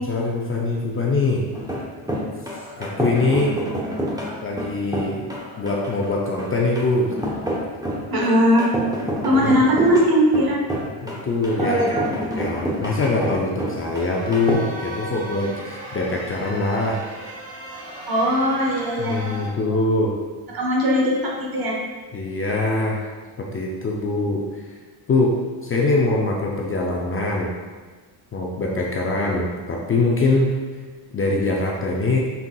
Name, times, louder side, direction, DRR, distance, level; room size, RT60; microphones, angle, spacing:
voice 1, 0.1-1.5 2.8-3.6 4.4-5.3 5.6-7.2 9.4-9.5 11.0-12.0 12.3-17.0 19.0-20.2 22.1-23.1 23.4-24.7 25.1-27.5 28.3-30.5 31.1-32.2, left 2 dB, 30° left, -2 dB, 0.5 m, -23 dB
sound 1, 1.5-14.5, equal, 10° right, 0.8 m, -28 dB
voice 2, 8.1-8.7 9.2-10.6 11.6-12.0 18.1-19.2 20.5-21.8, equal, 50° right, -2 dB, 1.2 m, -19 dB
sound 2, 13.9-19.5, right 1 dB, 30° right, 1.0 m, -36 dB
5.5 x 3.6 x 2.3 m, 1.4 s
cardioid pair, 105°, 47 cm